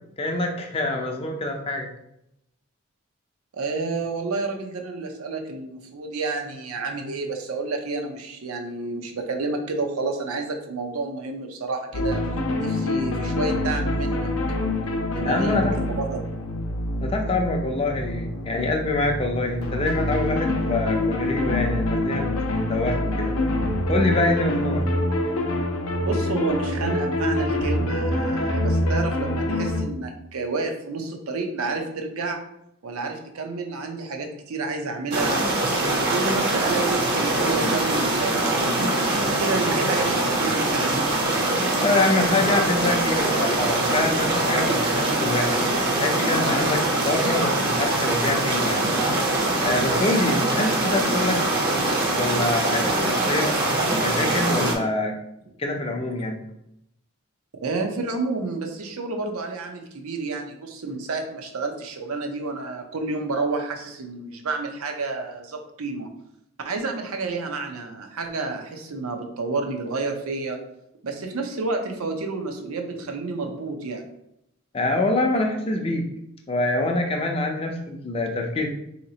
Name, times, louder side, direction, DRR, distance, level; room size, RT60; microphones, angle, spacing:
voice 1, 0.2-1.9 15.2-15.7 17.0-22.3 22.5-23.3 23.9-24.8 41.8-45.6 46.0-48.9 49.6-51.4 52.2-53.5 53.9-55.1 55.6-56.4 74.7-76.1 76.5-78.7, left 2 dB, 25° left, 2 dB, 0.4 m, -25 dB
voice 2, 3.5-12.2 12.6-14.3 15.1-16.2 26.0-32.4 32.8-38.4 39.0-40.9 57.6-66.1 66.6-70.6 71.0-74.1, right 3 dB, 85° right, 4 dB, 0.6 m, -30 dB
sound 1, 11.9-29.8, left 1 dB, 80° left, 0.6 m, -26 dB
sound 2, 35.1-54.7, right 2 dB, 45° right, 0.6 m, -23 dB
3.9 x 2.9 x 2.8 m, 0.78 s
head